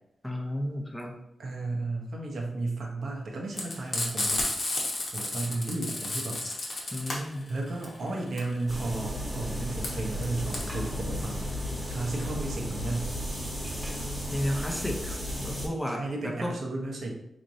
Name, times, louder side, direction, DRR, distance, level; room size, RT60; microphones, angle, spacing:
voice 1, 0.2-1.2 6.9-7.5 14.3-16.5, equal, 5° left, 0 dB, 0.7 m, -33 dB
voice 2, 1.4-4.4 5.1-6.7 7.5-11.6 11.9-13.4 15.9-17.1, right 2 dB, 65° right, 0 dB, 0.8 m, -33 dB
Frying (food), 3.5-12.3, left 2 dB, 50° left, 1.0 m, -32 dB
sound 1, 8.7-15.7, equal, 10° right, 1.1 m, -34 dB
4.3 x 3.1 x 2.6 m, 0.81 s
wide cardioid pair, 105°, 0 cm